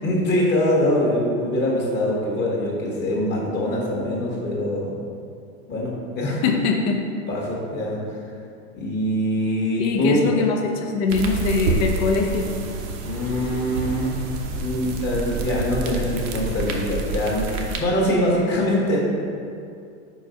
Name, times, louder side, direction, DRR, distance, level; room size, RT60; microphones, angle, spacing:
voice 1, 0.0-4.9 5.7-6.4 7.3-8.0 8.7-10.2 13.0-14.1 14.5-19.0, left 1 dB, 30° left, -3 dB, 1.4 m, -23 dB
voice 2, 6.4-7.0 9.8-12.5, left 4 dB, 50° left, 3 dB, 0.9 m, -22 dB
sound 1, 11.1-17.8, right 4 dB, 60° right, 0.9 m, -28 dB
5.2 x 4.1 x 5.1 m, 2.4 s
supercardioid pair, 130°, 35 cm